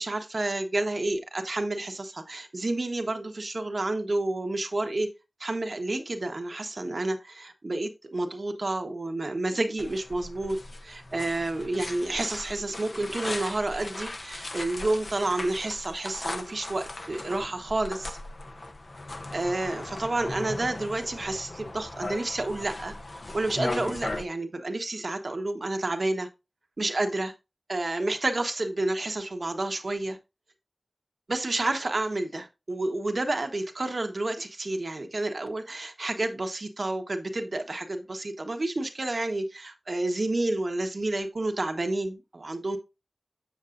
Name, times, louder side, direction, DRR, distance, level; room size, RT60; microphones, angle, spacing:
voice 1, 0.0-5.1 5.4-18.2 19.3-26.3 26.8-27.3 27.7-30.2 31.3-42.8, right 2 dB, 65° right, 1.2 m, -30 dB
sound 1, 9.8-24.2, left 2 dB, 65° left, 0.8 m, -38 dB
7.3 x 7.3 x 2.5 m
wide cardioid pair, 45°, 0 cm